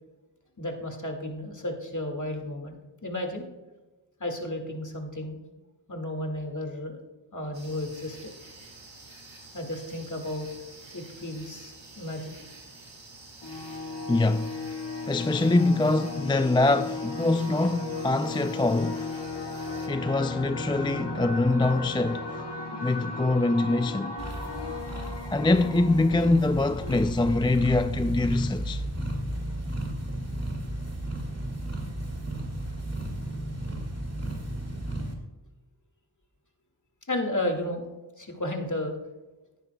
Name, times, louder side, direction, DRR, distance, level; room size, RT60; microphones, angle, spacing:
voice 1, 0.6-2.8 3.0-3.5 4.2-5.4 5.9-7.0 7.3-8.3 9.5-10.5 10.9-12.5 37.1-37.9 38.2-39.0, left 1 dB, 40° left, 2.0 m, -33 dB
sound 1, 7.5-19.9, right 2 dB, 85° right, 2.1 m, -49 dB
sound 2, 13.4-28.7, left 3 dB, 65° left, 1.7 m, -36 dB
voice 2, 14.1-14.6 15.1-19.2 19.9-22.4 22.8-24.2 25.3-28.8, left 2 dB, 10° left, 0.3 m, -24 dB
sound 3, 24.2-35.1, right 1 dB, 35° right, 2.2 m, -34 dB
17.0 x 9.6 x 2.2 m
wide cardioid pair, 40°, 44 cm